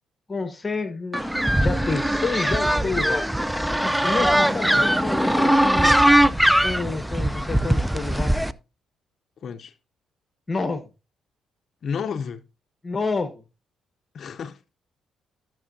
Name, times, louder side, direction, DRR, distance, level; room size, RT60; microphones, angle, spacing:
voice 1, 0.3-1.3 1.6-3.3 4.0-6.0 6.6-8.5 10.5-10.9 12.8-13.4, left 4 dB, 30° left, 1.0 m, -29 dB
sound 1, 1.1-8.5, right 1 dB, 5° right, 0.4 m, -20 dB
voice 2, 4.5-4.9 9.4-9.7 11.8-12.4 14.1-14.6, left 6 dB, 55° left, 0.6 m, -32 dB
14.0 x 6.0 x 2.7 m
cardioid pair, 90°, 0 cm